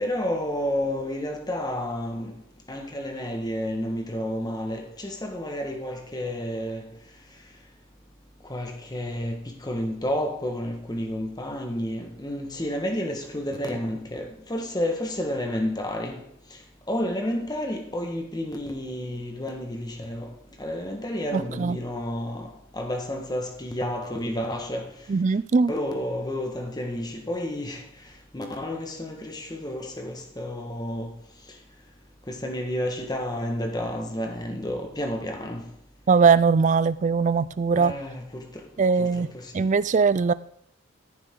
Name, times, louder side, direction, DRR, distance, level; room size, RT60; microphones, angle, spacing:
voice 1, 0.0-2.3 2.7-6.9 8.5-16.2 16.9-20.3 20.6-24.9 25.7-27.8 28.3-31.1 32.3-35.6 37.8-38.5 39.0-39.5, left 1 dB, 20° left, 1.4 m, -30 dB
voice 2, 21.3-21.8 25.1-25.7 36.1-37.9 38.8-39.3 39.5-40.3, right 5 dB, 35° right, 0.3 m, -20 dB
14.0 x 6.9 x 3.7 m
head